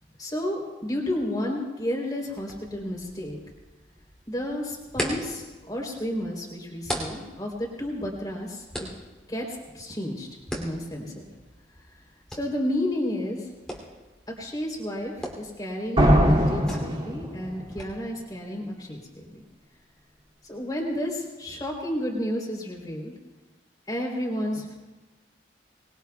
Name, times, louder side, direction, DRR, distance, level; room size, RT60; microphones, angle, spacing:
voice 1, 0.2-3.4 4.3-8.9 9.3-10.3 10.5-11.3 12.3-13.5 14.3-19.4 20.4-23.1 23.9-24.7, left 1 dB, 20° left, 0 dB, 3.5 m, -31 dB
sound 1, 2.3-17.8, equal, 5° left, 2.9 m, -40 dB
sound 2, 16.0-17.8, equal, 30° right, 2.5 m, -21 dB
25.5 x 21.0 x 2.3 m, 1.2 s
head